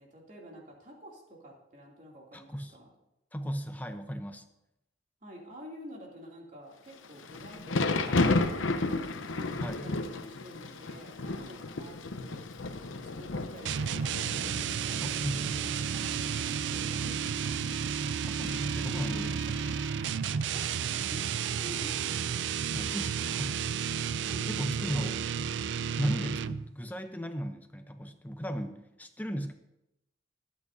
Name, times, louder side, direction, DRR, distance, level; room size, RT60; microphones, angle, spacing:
voice 1, 0.0-2.9 5.2-12.4 13.2-14.3 14.8-17.5 20.5-22.3 24.2-25.4 26.0-26.1, equal, 40° right, -2 dB, 2.7 m, -49 dB
voice 2, 2.3-2.7 3.3-4.4 9.6-9.9 15.0-15.6 18.2-19.8 22.7-23.6 24.4-25.2 26.0-29.5, equal, 10° left, 6 dB, 0.6 m, -36 dB
Thunder / Rain, 7.0-20.0, left 2 dB, 85° left, 0.8 m, -34 dB
sound 1, 13.7-26.7, right 7 dB, 65° right, 0.4 m, -32 dB
22.5 x 8.6 x 2.7 m, 0.88 s
head